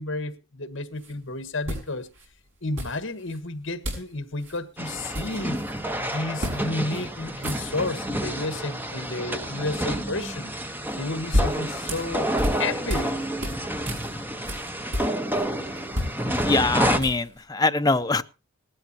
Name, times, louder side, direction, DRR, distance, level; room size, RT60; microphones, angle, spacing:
voice 1, 0.0-2.1 2.6-5.6 6.0-10.5 11.0-12.3 12.6-13.3, left 2 dB, 65° left, 1.6 m, -31 dB
sound 1, 1.0-1.1 1.6-2.3 2.8-3.4 3.8-4.1 4.4-4.6 4.9-5.8 6.4-6.6 6.9-7.0 7.3-8.0 10.9-13.1 13.4-15.4 15.8-17.4, equal, 60° right, 6.5 m, -31 dB
sound 2, 4.8-17.0, right 1 dB, 10° right, 1.1 m, -29 dB
voice 2, 16.4-18.2, left 3 dB, 20° left, 0.6 m, -23 dB
19.0 x 13.0 x 2.9 m
head